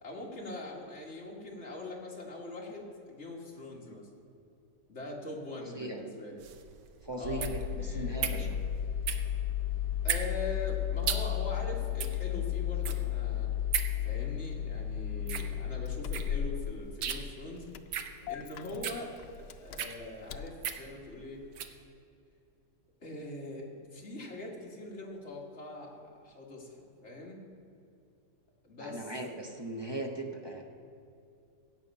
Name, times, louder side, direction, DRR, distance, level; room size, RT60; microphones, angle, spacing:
voice 1, 0.0-4.1 4.9-6.4 7.2-8.6 10.0-13.5 14.0-17.7 18.3-19.2 19.6-21.4 23.0-27.4 28.6-29.1, left 2 dB, 40° left, -2 dB, 2.2 m, -42 dB
voice 2, 5.6-6.0 7.0-8.6 28.8-30.6, right 1 dB, 20° right, 2 dB, 0.8 m, -39 dB
sound 1, 6.4-21.8, right 8 dB, 85° right, 1.4 m, -38 dB
Engine starting, 7.2-20.5, left 10 dB, 80° left, 1.2 m, -34 dB
16.5 x 7.6 x 5.5 m, 2.6 s
omnidirectional pair, 1.8 m